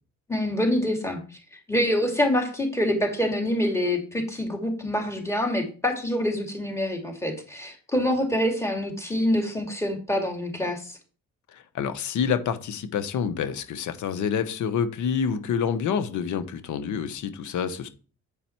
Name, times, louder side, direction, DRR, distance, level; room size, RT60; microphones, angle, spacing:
voice 1, 0.3-1.2 1.5-11.0, left 1 dB, 10° left, 2.4 m, -26 dB
voice 2, 11.5-17.9, left 7 dB, 75° left, 1.0 m, -27 dB
8.8 x 5.3 x 4.4 m
cardioid pair, 90°, 30 cm